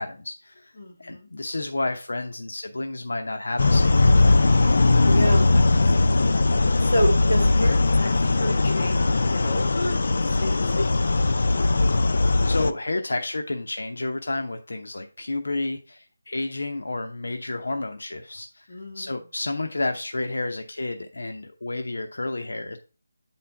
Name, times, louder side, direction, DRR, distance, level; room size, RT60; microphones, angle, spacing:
voice 1, 0.0-0.7 1.0-4.4 12.4-18.7 18.9-22.8, left 2 dB, 80° left, 5 dB, 0.8 m, -30 dB
voice 2, 0.8-1.3 5.0-6.2 6.8-11.3 18.7-19.1, equal, 35° left, -3 dB, 2.2 m, -30 dB
sound 1, 3.6-12.7, left 2 dB, 55° left, 0.5 m, -19 dB
8.4 x 4.3 x 3.3 m, 0.35 s
figure-of-eight pair, 175°, 0 cm